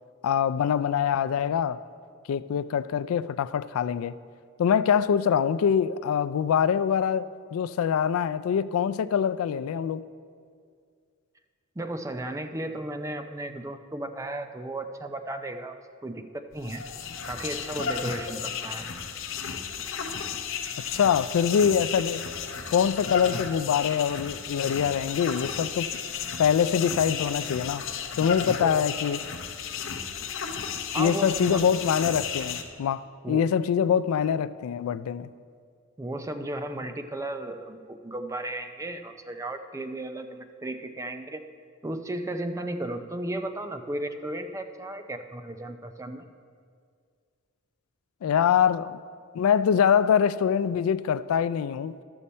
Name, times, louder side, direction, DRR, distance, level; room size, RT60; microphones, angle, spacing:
voice 1, 0.2-1.8 2.3-4.1 4.6-10.0 20.9-22.2 22.7-26.0 26.4-27.8 28.2-29.2 31.0-35.3 48.2-48.9 49.3-52.0, left 8 dB, 85° left, 0.3 m, -24 dB
voice 2, 11.8-15.8 16.0-16.2 16.5-16.8 17.2-18.8 28.6-28.8 30.9-31.8 33.2-33.5 36.0-41.4 41.8-46.2, right 1 dB, 15° right, 0.4 m, -34 dB
sound 1, 16.5-32.6, left 6 dB, 65° left, 0.8 m, -33 dB
12.0 x 6.9 x 4.2 m
head